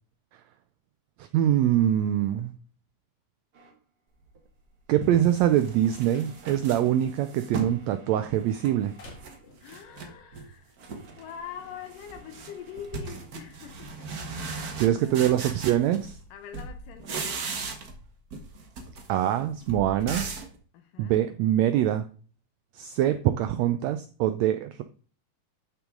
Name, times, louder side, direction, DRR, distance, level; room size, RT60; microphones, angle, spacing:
voice 1, 1.2-2.5 4.9-8.9 14.8-16.2 19.1-20.3 21.0-22.1 22.7-24.8, right 11 dB, 85° right, 1.5 m, -24 dB
sound 1, 3.5-13.3, right 3 dB, 50° right, 2.9 m, -56 dB
sound 2, 4.4-4.5 5.0-7.8 8.2-9.4 9.6-10.5 10.8-11.2 11.5-16.3 16.5-18.0 18.3-20.6, right 4 dB, 70° right, 0.8 m, -38 dB
sound 3, 5.1-10.1, left 2 dB, 50° left, 2.7 m, -55 dB
voice 2, 9.6-10.8 11.2-14.1 14.5-15.4 16.3-17.7 20.7-21.2, left 9 dB, 85° left, 2.6 m, -44 dB
12.0 x 5.9 x 3.8 m
omnidirectional pair, 3.7 m